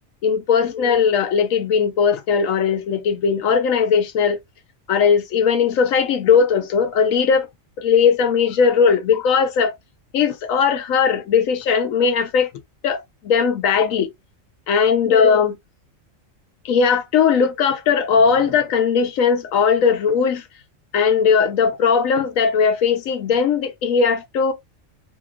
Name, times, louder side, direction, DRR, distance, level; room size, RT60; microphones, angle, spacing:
voice 1, 0.2-4.4 4.9-7.5 7.8-9.7 10.1-12.5 12.8-14.1 14.7-15.6 16.6-20.4 20.9-24.5, left 6 dB, 85° left, 1.1 m, -18 dB
3.0 x 2.9 x 2.4 m
omnidirectional pair, 1.4 m